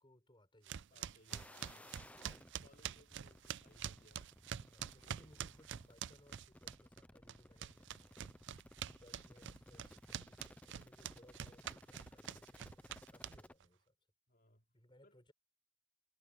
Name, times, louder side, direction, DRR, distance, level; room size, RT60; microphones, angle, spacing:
voice 1, 0.0-1.0 4.6-14.0 14.7-15.3, left 1 dB, 20° left, 6.6 m, -66 dB
sound 1, 0.7-7.0 7.3-13.6, right 9 dB, 55° right, 0.4 m, -46 dB
voice 2, 0.9-4.3 5.0-5.5 14.3-14.7 15.0-15.2, left 1 dB, 40° left, 5.3 m, -68 dB
sound 2, 1.3-13.6, left 1 dB, 5° left, 0.8 m, -59 dB
head